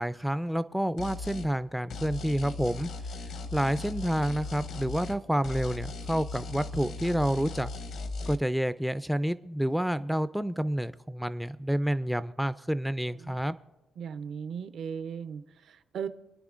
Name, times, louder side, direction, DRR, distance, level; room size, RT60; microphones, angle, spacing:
voice 1, 0.0-2.9 3.5-7.7 8.3-13.6, equal, ahead, 13 dB, 0.3 m, -29 dB
sound 1, 1.0-1.5 1.9-5.2 5.4-8.4, left 3 dB, 75° left, 0.9 m, -38 dB
voice 2, 14.0-16.1, right 7 dB, 70° right, 11 dB, 0.6 m, -37 dB
27.5 x 9.7 x 2.5 m, 0.99 s
cardioid pair, 90°, 0 cm